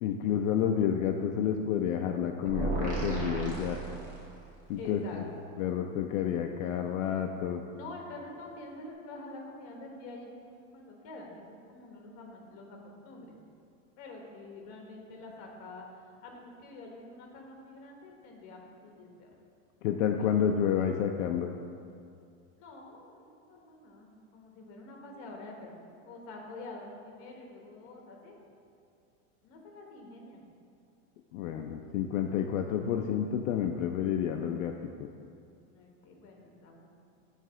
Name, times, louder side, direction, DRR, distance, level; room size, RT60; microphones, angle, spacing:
voice 1, 0.0-3.8 4.7-5.2 5.6-7.6 19.8-21.5 31.3-34.7, left 8 dB, 75° left, 3 dB, 0.5 m, -29 dB
sound 1, 2.5-4.6, right 4 dB, 20° right, 1.0 m, -34 dB
voice 2, 4.8-5.3 7.7-13.4 14.0-19.3 20.2-20.3 22.6-28.4 29.4-30.4 35.7-36.9, left 2 dB, 40° left, 0 dB, 1.2 m, -47 dB
7.4 x 3.3 x 6.0 m, 2.4 s
supercardioid pair, 165°, 40 cm